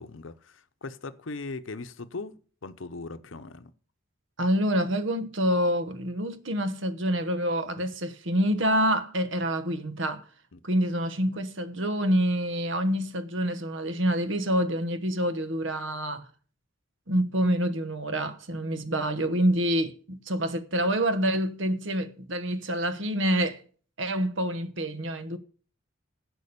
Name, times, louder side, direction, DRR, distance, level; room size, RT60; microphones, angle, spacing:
voice 1, 0.0-2.3 2.6-3.7 7.8-7.9 10.5-10.6, left 3 dB, 70° left, 0.8 m, -39 dB
voice 2, 4.4-10.2 10.6-16.2 17.1-23.6 24.0-25.4, equal, 65° right, 1.1 m, -27 dB
11.0 x 6.2 x 6.8 m
head